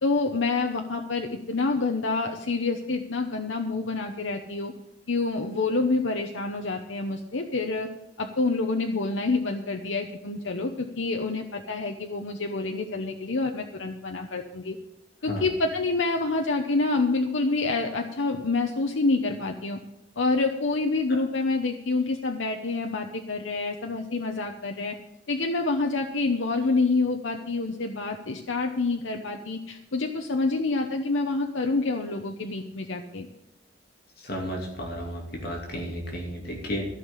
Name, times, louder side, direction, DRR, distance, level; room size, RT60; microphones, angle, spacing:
voice 1, 0.0-4.7 5.1-7.9 8.2-14.8 15.2-19.8 20.2-25.0 25.3-33.3, left 3 dB, 80° left, 4 dB, 0.9 m, -27 dB
voice 2, 34.2-36.9, equal, 50° left, -1 dB, 2.7 m, -33 dB
14.5 x 5.7 x 8.4 m, 0.98 s
head